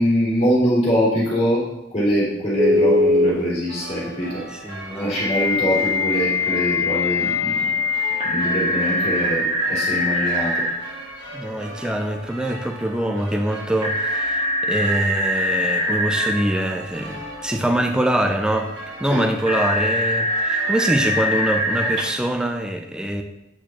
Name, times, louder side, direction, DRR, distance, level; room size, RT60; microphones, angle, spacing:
voice 1, 0.0-1.6 1.9-4.4 4.9-7.7 8.2-10.6 19.1-19.2, equal, 35° left, -7 dB, 2.9 m, -23 dB
Telephone, 2.6-3.3 5.2-10.7 13.8-16.3 19.5-22.0, left 2 dB, 35° right, 1.6 m, -22 dB
sound 1, 3.7-22.0, right 1 dB, 80° right, 1.3 m, -38 dB
voice 2, 4.5-5.2 11.3-18.7 19.0-23.2, right 1 dB, 5° right, 4 dB, 0.4 m, -24 dB
8.3 x 6.2 x 3.0 m, 0.89 s
head